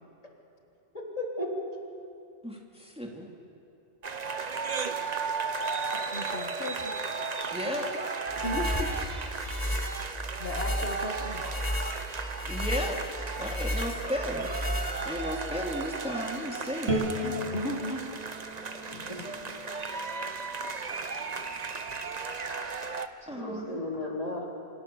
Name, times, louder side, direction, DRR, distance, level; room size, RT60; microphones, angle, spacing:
voice 1, 0.9-1.5 18.9-19.2 23.2-24.5, left 1 dB, 35° left, -1 dB, 3.5 m, -35 dB
voice 2, 2.4-3.3 7.5-7.9 12.4-13.0 13.4-17.4 21.5-21.6 23.3-23.8, equal, 5° right, 0 dB, 2.6 m, -35 dB
sound 1, 4.0-23.1, right 4 dB, 40° right, 1.0 m, -35 dB
voice 3, 6.1-6.9 8.4-8.9 10.4-11.5 17.5-18.2 19.2-19.3, left 2 dB, 65° left, 3 dB, 1.8 m, -35 dB
sound 2, 8.3-15.4, left 1 dB, 20° left, 2.3 m, -33 dB
Bowed string instrument, 16.9-20.1, equal, 75° right, 2.9 m, -34 dB
27.0 x 25.5 x 7.0 m, 2.7 s
omnidirectional pair, 1.1 m